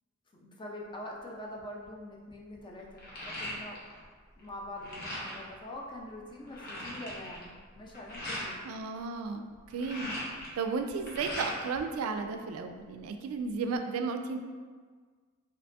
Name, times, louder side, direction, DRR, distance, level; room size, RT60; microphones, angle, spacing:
voice 1, 0.3-3.8 4.4-8.6, left 1 dB, 20° left, -1 dB, 0.4 m, -44 dB
sound 1, 1.6-1.9 2.3-4.0 4.3-5.5 6.0-6.1 6.3-8.5 9.5-11.8 12.1-13.0, left 1 dB, 45° left, 0.8 m, -40 dB
voice 2, 8.6-10.1 10.6-14.4, right 4 dB, 80° right, 7 dB, 0.3 m, -34 dB
2.8 x 2.7 x 3.2 m, 1.5 s
head